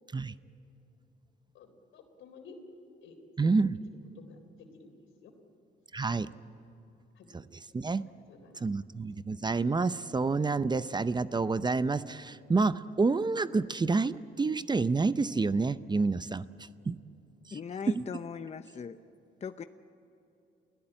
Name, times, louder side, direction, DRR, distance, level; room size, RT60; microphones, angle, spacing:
voice 1, 1.5-2.6 3.0-3.2 3.4-3.5 4.2-5.0 5.2-5.3 7.2-7.3 8.1-8.9, left 5 dB, 80° left, 6 dB, 3.6 m, -53 dB
voice 2, 3.4-3.8 5.9-6.3 7.7-8.0 8.6-16.4 16.9-17.0, right 4 dB, 20° right, 14 dB, 0.6 m, -28 dB
voice 3, 17.5-19.0 19.4-19.6, left 6 dB, 35° left, 10 dB, 0.7 m, -39 dB
29.0 x 17.0 x 8.9 m, 2.8 s
cardioid pair, 90°, 20 cm